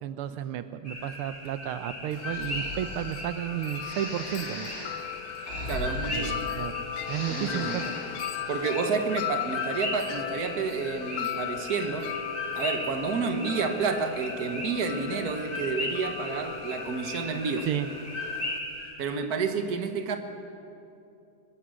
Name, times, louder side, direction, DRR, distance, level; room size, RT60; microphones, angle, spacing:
voice 1, 0.0-4.7 6.1-6.7 7.1-7.9 8.4-8.5 17.6-17.9, right 11 dB, 85° right, 1.7 m, -33 dB
sound 1, 0.8-18.9, left 1 dB, 20° left, 4.8 m, -38 dB
Wind chime, 2.1-18.6, left 12 dB, 75° left, 1.4 m, -38 dB
Breathing, 2.2-3.2 3.8-6.7 7.0-8.1, left 2 dB, 40° left, 3.8 m, -38 dB
voice 2, 5.7-6.5 7.3-7.8 8.5-12.1 12.6-17.7 19.0-20.2, right 5 dB, 50° right, 1.8 m, -30 dB
24.5 x 20.0 x 6.4 m
omnidirectional pair, 2.4 m